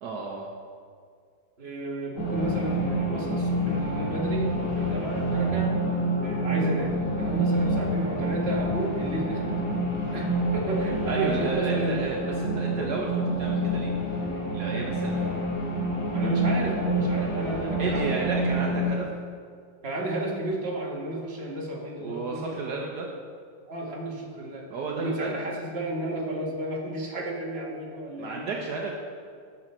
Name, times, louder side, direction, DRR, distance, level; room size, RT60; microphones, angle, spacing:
voice 1, 0.0-0.5 7.4-7.8 11.1-13.9 14.5-15.2 17.8-19.1 22.0-23.1 24.7-25.3 28.2-28.9, right 4 dB, 65° right, -1 dB, 1.4 m, -32 dB
voice 2, 1.6-5.8 6.2-9.4 10.1-12.1 16.1-18.5 19.8-22.7 23.6-24.7 25.0-28.5, right 1 dB, 35° right, -2 dB, 1.7 m, -33 dB
sound 1, 2.2-18.8, right 1 dB, 85° left, 3.1 m, -27 dB
14.5 x 6.2 x 4.3 m, 2.1 s
omnidirectional pair, 2.0 m